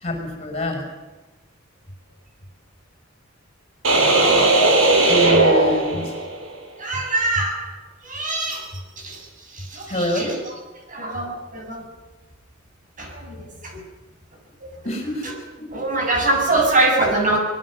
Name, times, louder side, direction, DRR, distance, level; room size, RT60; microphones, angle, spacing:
voice 1, 0.0-0.8 5.1-6.0 9.9-10.4 14.8-15.3 15.6-15.7, left 1 dB, 30° left, 2 dB, 7.5 m, -25 dB
sound 1, 3.8-6.5, right 2 dB, 80° right, 5.5 m, -17 dB
voice 2, 6.8-7.7 8.1-8.7 9.0-9.2 9.7-10.3 10.9-11.8 13.0-13.4 15.7-17.4, right 2 dB, 40° right, 2 dB, 7.2 m, -22 dB
24.0 x 21.5 x 6.8 m, 1.2 s
head